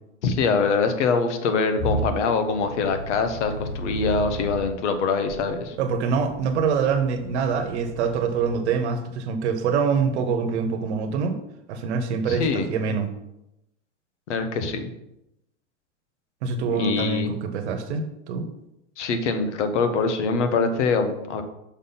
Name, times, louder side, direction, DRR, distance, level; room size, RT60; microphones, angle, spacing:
voice 1, 0.2-5.8 12.3-13.0 14.3-14.9 16.6-17.3 19.0-21.4, left 4 dB, 75° left, 8 dB, 1.2 m, -24 dB
sound 1, 1.8-4.7 5.3-8.5, right 1 dB, 10° left, 0.7 m, -34 dB
voice 2, 5.8-11.4 11.7-13.1 16.4-18.5, right 5 dB, 65° right, 8 dB, 1.2 m, -25 dB
6.2 x 4.1 x 5.6 m, 0.86 s
supercardioid pair, 150°, 36 cm